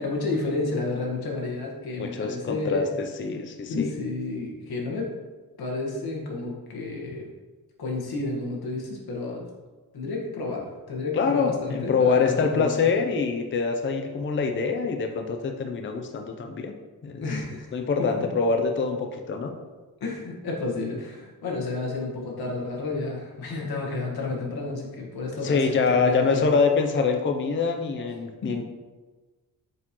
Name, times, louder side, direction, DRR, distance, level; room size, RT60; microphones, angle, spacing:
voice 1, 0.0-2.9 3.7-5.1 5.6-7.3 7.8-9.5 9.9-12.9 17.2-18.3 20.0-26.5 28.4-28.6, left 3 dB, 85° left, -2 dB, 1.5 m, -31 dB
voice 2, 2.0-3.9 11.1-16.8 17.0-17.2 17.7-19.5 25.4-28.6, left 5 dB, 35° left, 4 dB, 0.5 m, -25 dB
7.6 x 4.5 x 3.0 m, 1.3 s
wide cardioid pair, 135°, 36 cm